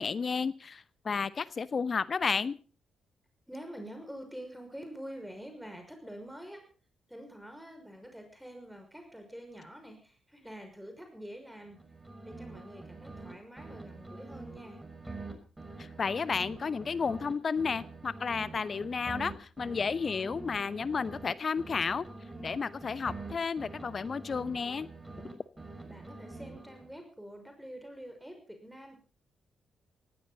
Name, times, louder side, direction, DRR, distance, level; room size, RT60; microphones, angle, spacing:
voice 1, 0.0-2.6 16.0-22.0 22.4-24.9, left 5 dB, 45° left, 17 dB, 0.8 m, -32 dB
voice 2, 3.5-6.7 7.1-11.8 12.2-14.8 25.8-29.0, equal, 5° right, 5 dB, 5.8 m, -46 dB
sound 1, 11.7-13.3 13.6-17.3 17.6-21.3 21.6-25.3 25.6-27.0, right 3 dB, 20° right, 5.8 m, -45 dB
19.0 x 16.5 x 4.1 m, 0.36 s
hypercardioid pair, 40°, 0 cm